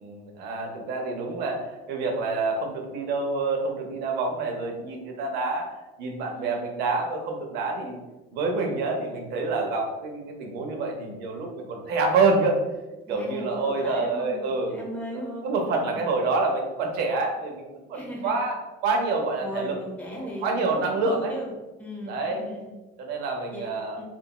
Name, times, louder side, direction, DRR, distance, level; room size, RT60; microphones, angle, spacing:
voice 1, 0.0-5.7 6.0-8.0 8.3-12.6 13.1-14.7 15.1-19.7 20.2-21.3 22.1-22.4 23.0-24.0, right 3 dB, 65° right, 2 dB, 0.7 m, -27 dB
voice 2, 6.3-6.6 13.1-16.1 17.9-18.3 19.4-21.5 21.8-22.8 23.5-23.7 24.0-24.1, equal, 10° left, -3 dB, 0.7 m, -37 dB
2.9 x 2.5 x 2.3 m, 1.1 s
cardioid pair, 145°, 18 cm